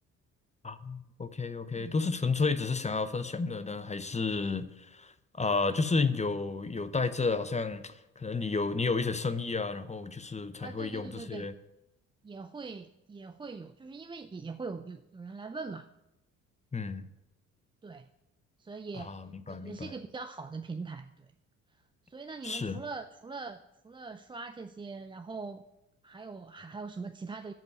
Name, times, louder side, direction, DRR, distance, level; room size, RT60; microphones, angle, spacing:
voice 1, 0.6-11.5 16.7-17.1 19.0-19.9 22.4-22.8, left 4 dB, 15° left, 13 dB, 0.8 m, -32 dB
voice 2, 10.6-11.5 12.2-15.9 17.8-18.1 18.6-21.3 21.7-25.6 26.0-27.5, right 4 dB, 15° right, 8 dB, 0.4 m, -42 dB
10.5 x 5.3 x 7.9 m, 0.92 s
hypercardioid pair, 50°, 40 cm